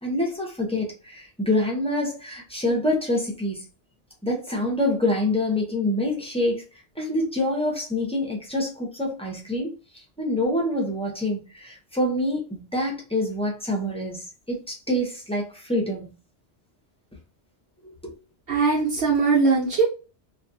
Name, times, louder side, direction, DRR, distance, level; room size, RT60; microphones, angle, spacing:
voice 1, 0.0-3.6 4.2-6.6 7.0-16.1 17.8-18.1, left 1 dB, 5° left, 0.6 m, -26 dB
voice 2, 18.5-19.8, right 4 dB, 70° right, 1.1 m, -20 dB
2.5 x 2.3 x 2.6 m
omnidirectional pair, 1.2 m